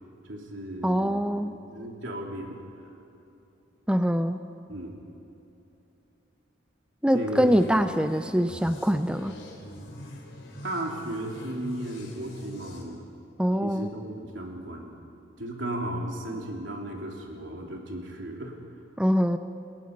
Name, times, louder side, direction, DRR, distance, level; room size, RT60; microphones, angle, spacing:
voice 1, 0.2-2.6 4.7-4.9 7.1-7.6 10.6-13.0 13.6-14.9 15.4-18.5, right 1 dB, 75° right, 0 dB, 3.4 m, -35 dB
voice 2, 0.8-1.5 3.9-4.4 7.0-9.3 13.4-13.9 19.0-19.4, equal, 5° right, 9 dB, 0.5 m, -24 dB
sound 1, 7.4-12.8, left 1 dB, 75° left, 4.1 m, -43 dB
29.0 x 20.0 x 5.4 m, 2.9 s
head